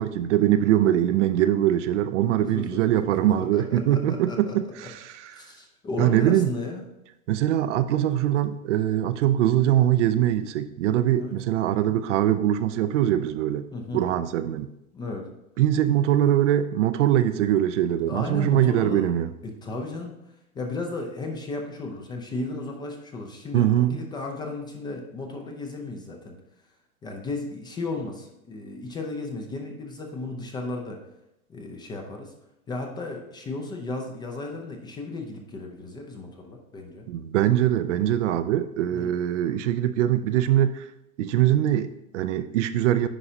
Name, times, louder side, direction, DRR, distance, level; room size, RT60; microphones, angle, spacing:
voice 1, 0.0-5.3 6.0-6.5 7.3-13.6 13.9-14.7 15.6-19.3 23.5-24.0 37.1-40.9 41.2-43.1, right 12 dB, 55° right, 0.5 m, -22 dB
voice 2, 2.4-4.6 5.3-6.8 11.1-11.4 13.7-14.1 14.9-15.2 18.1-19.1 19.4-20.1 20.5-26.4 27.0-31.0 31.5-32.3 32.7-37.1 38.9-39.2, left 2 dB, 10° left, 0.4 m, -34 dB
9.9 x 4.8 x 2.7 m
hypercardioid pair, 120°, 44 cm